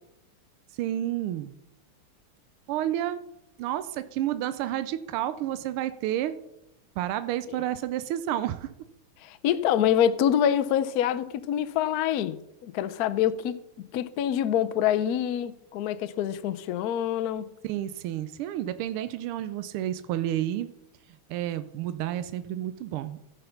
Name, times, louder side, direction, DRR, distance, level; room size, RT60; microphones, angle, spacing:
voice 1, 0.8-1.5 2.7-3.2 3.6-6.3 7.0-8.7 17.6-20.7 21.3-23.3, right 12 dB, 85° right, 1.5 m, -30 dB
voice 2, 9.2-12.4 12.6-13.5 13.9-17.5, left 10 dB, 85° left, 0.8 m, -26 dB
15.0 x 5.6 x 5.7 m
omnidirectional pair, 2.4 m